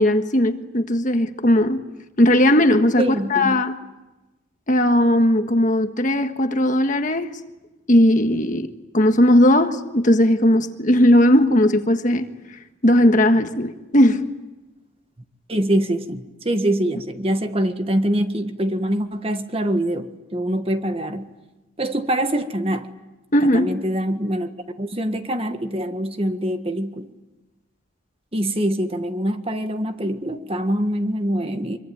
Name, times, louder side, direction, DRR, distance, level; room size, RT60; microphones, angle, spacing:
voice 1, 0.0-1.8 2.2-3.8 4.7-7.3 7.9-8.7 8.9-12.3 12.8-14.3 23.3-23.7, left 1 dB, 40° left, 1.5 m, -17 dB
voice 2, 3.0-3.6 15.5-21.3 21.8-22.9 23.4-24.5 24.8-27.1 28.3-31.8, right 1 dB, 30° right, 1.6 m, -24 dB
25.5 x 23.5 x 9.3 m
head